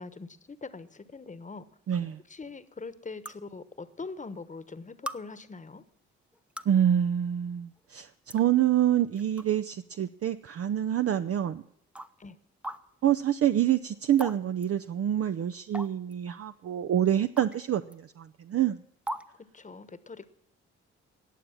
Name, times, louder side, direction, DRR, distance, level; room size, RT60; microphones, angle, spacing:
voice 1, 0.0-1.6 2.3-5.8 12.2-12.4 19.4-20.3, left 4 dB, 25° left, 14 dB, 1.1 m, -42 dB
sound 1, 1.9-2.0 3.3-3.4 4.4-4.5 5.1-5.2 6.3-6.8 7.8-7.9 8.3-8.4 9.2-9.5 10.0-10.1 11.0-11.1 12.0-12.1 12.6-12.8 14.2-14.4 14.6-14.7 15.7-16.1 17.4-17.6 17.9-18.0 19.1-19.3, equal, 5° right, 0.7 m, -37 dB
voice 2, 1.9-2.2 6.7-11.6 13.0-18.8, right 10 dB, 50° right, 10 dB, 0.6 m, -26 dB
18.5 x 7.0 x 7.2 m, 0.73 s
supercardioid pair, 60°, 29 cm